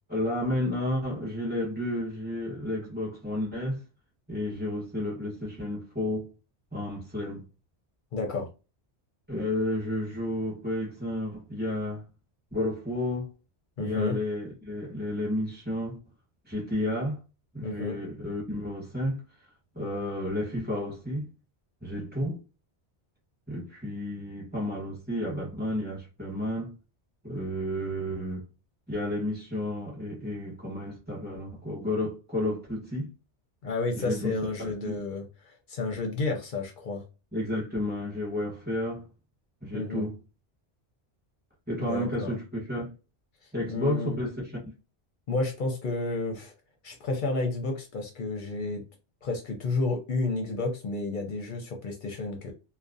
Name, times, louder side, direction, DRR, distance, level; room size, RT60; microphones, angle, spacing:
voice 1, 0.1-3.8 4.3-6.3 6.7-7.4 9.3-12.0 12.5-13.3 13.8-16.0 16.4-17.2 17.5-19.2 19.7-21.3 21.8-22.4 23.5-26.7 27.2-28.4 28.9-33.1 34.0-35.0 37.3-39.1 39.6-40.2 41.7-42.9 43.5-44.5, left 1 dB, 10° right, 0.9 m, -31 dB
voice 2, 8.1-8.5 13.8-14.2 17.6-18.0 33.6-37.0 39.7-40.0 41.8-42.3 43.7-44.2 45.3-46.5 46.8-48.8 49.2-52.5, left 3 dB, 55° left, 0.7 m, -31 dB
2.4 x 2.1 x 2.5 m
omnidirectional pair, 1.2 m